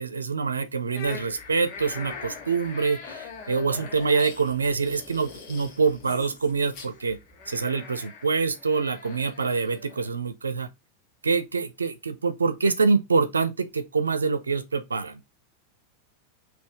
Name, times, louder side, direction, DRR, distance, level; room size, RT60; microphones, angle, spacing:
voice 1, 0.0-7.2 7.5-10.7 11.2-15.2, right 4 dB, 75° right, 0.7 m, -25 dB
sound 1, 0.9-10.1, left 4 dB, 40° left, 1.7 m, -42 dB
5.4 x 3.1 x 3.1 m
figure-of-eight pair, 90°, 0 cm